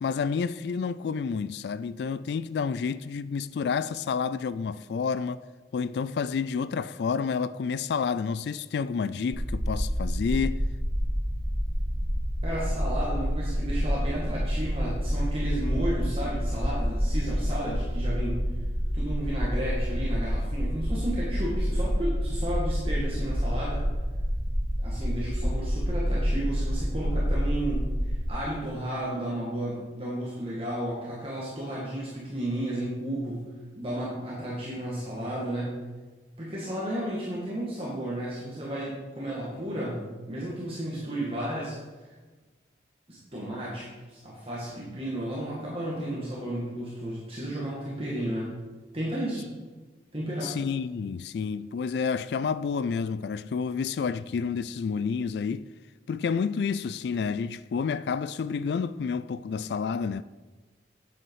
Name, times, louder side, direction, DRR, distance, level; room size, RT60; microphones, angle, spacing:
voice 1, 0.0-5.4 5.7-10.6 50.4-55.7 56.1-60.2, left 5 dB, 70° left, 0.3 m, -29 dB
sound 1, 9.3-28.3, equal, 15° right, 0.9 m, -28 dB
voice 2, 12.4-18.4 18.9-23.8 24.8-35.7 36.4-41.8 43.1-48.5 48.9-49.5 50.1-50.5, right 1 dB, 30° right, 2.0 m, -33 dB
8.8 x 7.9 x 4.8 m
head